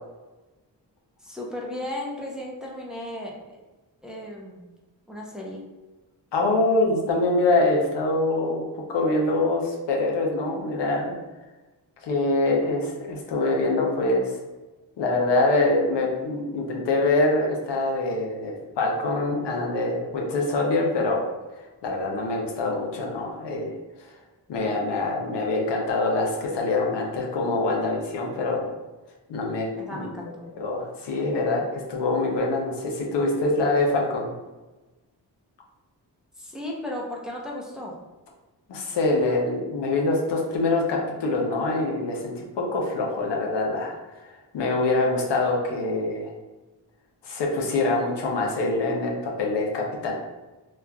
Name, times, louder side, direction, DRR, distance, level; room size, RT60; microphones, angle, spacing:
voice 1, 1.2-3.4 4.0-4.6 5.1-5.6 29.8-30.5 36.4-38.0, left 1 dB, ahead, -3 dB, 0.6 m, -35 dB
voice 2, 6.3-8.6 8.9-11.2 12.0-14.3 15.0-21.3 21.8-23.7 24.5-28.7 29.3-30.1 30.6-34.3 38.7-43.9 44.5-46.3 47.2-50.1, left 2 dB, 85° left, 0 dB, 0.7 m, -24 dB
3.1 x 2.4 x 2.2 m, 1.1 s
cardioid pair, 60°, 41 cm